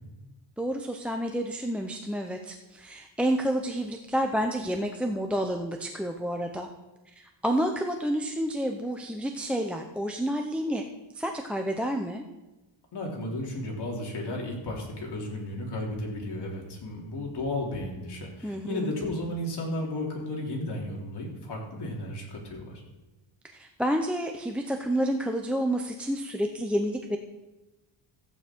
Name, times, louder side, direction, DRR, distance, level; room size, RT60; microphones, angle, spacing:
voice 1, 0.6-6.7 7.2-10.8 11.1-12.2 18.4-18.9 23.5-27.2, equal, ahead, 2 dB, 0.6 m, -29 dB
voice 2, 12.9-22.8, left 1 dB, 55° left, -2 dB, 3.4 m, -34 dB
14.0 x 9.1 x 4.5 m, 1.1 s
cardioid pair, 135°, 49 cm